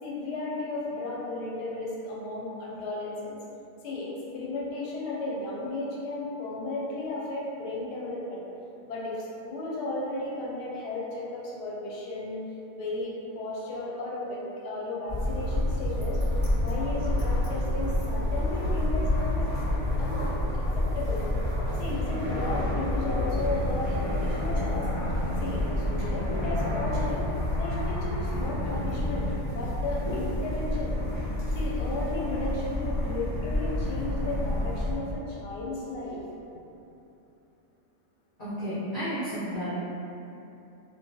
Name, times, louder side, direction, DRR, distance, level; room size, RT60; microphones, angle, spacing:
voice 1, 0.0-3.4 3.8-8.4 8.9-12.4 12.7-16.2 16.6-21.2 21.8-24.9 25.4-27.3 27.5-30.9 31.5-36.2, left 2 dB, 90° left, -4 dB, 1.2 m, -34 dB
sound 1, 15.1-34.9, left 1 dB, 35° right, 0.5 m, -28 dB
voice 2, 38.4-39.7, equal, 45° left, -14 dB, 0.7 m, -32 dB
2.7 x 2.2 x 2.6 m, 2.8 s
omnidirectional pair, 1.7 m